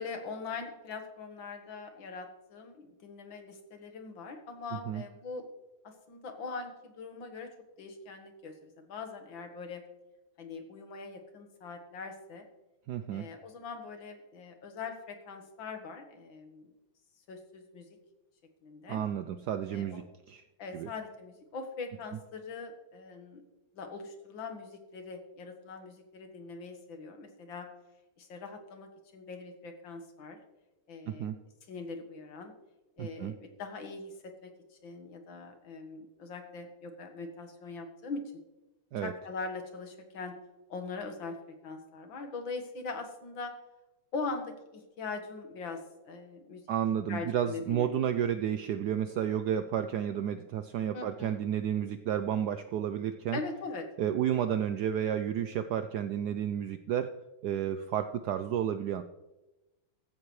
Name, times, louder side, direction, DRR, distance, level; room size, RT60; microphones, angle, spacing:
voice 1, 0.0-5.5 5.8-7.5 7.8-9.8 10.4-12.5 13.1-16.7 17.3-17.9 18.6-19.0 19.7-20.0 20.6-23.4 23.7-27.7 28.2-30.4 30.9-31.3 31.7-32.6 33.0-34.5 34.8-38.2 39.0-40.4 40.7-41.4 41.6-43.5 44.1-46.6 47.1-48.1 50.9-51.4 51.7-51.8 53.3-53.9, left 4 dB, 65° left, 6 dB, 2.2 m, -42 dB
voice 2, 12.9-13.3 18.9-20.4 20.7-20.9 31.1-31.4 33.0-33.3 38.9-39.1 46.7-53.4 54.0-57.1 57.4-59.0, right 9 dB, 85° right, 9 dB, 0.8 m, -31 dB
15.0 x 13.0 x 3.2 m, 1.0 s
omnidirectional pair, 2.4 m